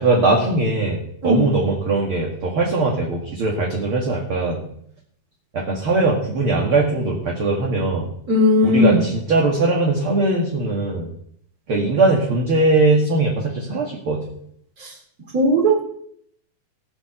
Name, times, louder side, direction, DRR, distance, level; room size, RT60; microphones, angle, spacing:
voice 1, 0.0-4.6 5.5-8.1 8.6-11.1 11.7-14.2, right 3 dB, 40° right, -1 dB, 2.3 m, -20 dB
voice 2, 8.3-9.0 14.8-14.9 15.3-15.8, left 1 dB, 25° right, 1 dB, 3.0 m, -17 dB
19.5 x 6.7 x 6.6 m, 0.68 s
omnidirectional pair, 4.4 m